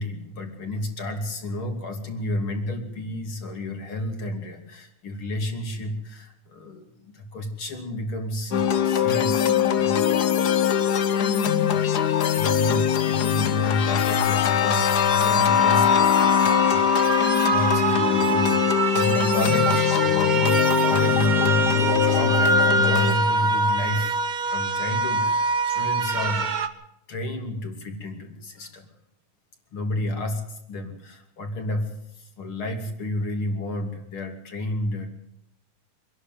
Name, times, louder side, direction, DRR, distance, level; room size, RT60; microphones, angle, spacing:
voice 1, 0.0-10.0 12.3-16.0 16.7-26.7 27.1-28.9 29.7-35.1, left 1 dB, 45° left, 5 dB, 3.4 m, -31 dB
sound 1, 8.5-23.1, left 9 dB, 85° left, 0.8 m, -21 dB
sound 2, 15.1-26.7, right 4 dB, 60° right, 0.9 m, -25 dB
25.0 x 11.5 x 9.3 m, 0.81 s
omnidirectional pair, 3.5 m